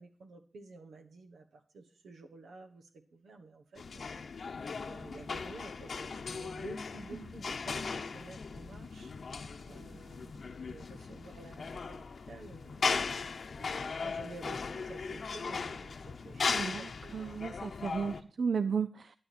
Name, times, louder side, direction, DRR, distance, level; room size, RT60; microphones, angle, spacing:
voice 1, 0.0-4.2 4.8-9.1 9.7-13.0 13.6-17.4, right 3 dB, 90° right, 1.3 m, -51 dB
sound 1, 3.8-18.2, left 5 dB, 70° left, 0.8 m, -38 dB
voice 2, 16.5-19.2, right 6 dB, 70° right, 0.4 m, -34 dB
12.5 x 8.9 x 4.3 m
cardioid pair, 50°, 0 cm